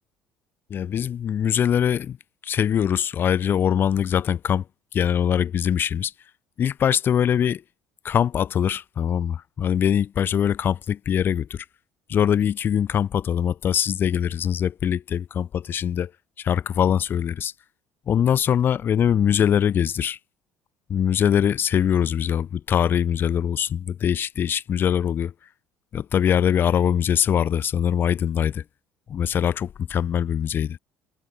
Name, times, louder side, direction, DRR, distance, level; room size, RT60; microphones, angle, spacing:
voice 1, 0.7-2.2 2.4-4.6 4.9-6.1 6.6-7.6 8.0-11.7 12.1-16.1 16.4-17.5 18.1-20.2 20.9-25.3 25.9-28.6 29.1-30.8, left 9 dB, 45° left, 3.9 m, -22 dB
cardioid pair, 105°, 5 cm